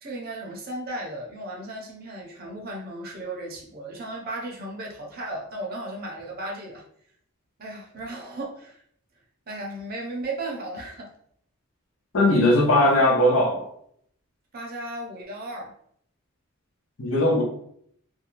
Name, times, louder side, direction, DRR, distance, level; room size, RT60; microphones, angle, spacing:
voice 1, 0.0-6.8 7.6-8.8 9.5-11.1 14.5-15.7, right 1 dB, 45° right, 0 dB, 0.6 m, -35 dB
voice 2, 12.1-13.7 17.0-17.4, left 1 dB, 65° left, 1 dB, 0.7 m, -19 dB
2.5 x 2.1 x 2.9 m, 0.66 s
head